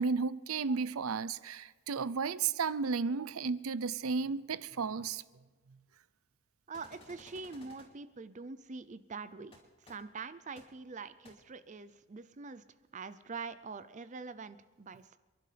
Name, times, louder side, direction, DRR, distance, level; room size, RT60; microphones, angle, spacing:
voice 1, 0.0-5.2, right 5 dB, 80° right, 0.6 m, -33 dB
sound 1, 6.7-7.9 9.5-9.6 9.9-10.0 10.6-10.7 11.2-11.3, left 1 dB, 25° left, 3.1 m, -56 dB
voice 2, 6.7-9.5 9.8-12.6 12.9-15.2, right 4 dB, 35° right, 0.5 m, -44 dB
28.5 x 11.5 x 3.4 m
head